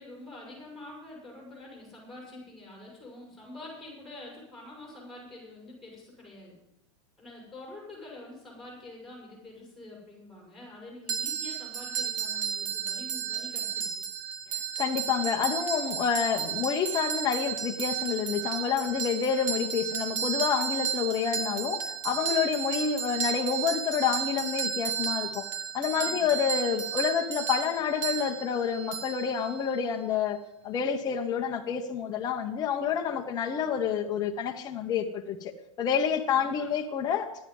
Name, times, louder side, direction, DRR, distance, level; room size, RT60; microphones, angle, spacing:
voice 1, 0.0-6.5 7.2-14.0 25.9-26.3 36.3-36.7, left 1 dB, ahead, 6.3 m, -46 dB
sound 1, 11.1-29.9, right 8 dB, 85° right, 1.9 m, -33 dB
voice 2, 14.8-25.5 25.7-30.4 30.6-35.5 35.8-37.3, left 7 dB, 25° left, 1.1 m, -28 dB
14.5 x 11.0 x 5.5 m
supercardioid pair, 140°, 16 cm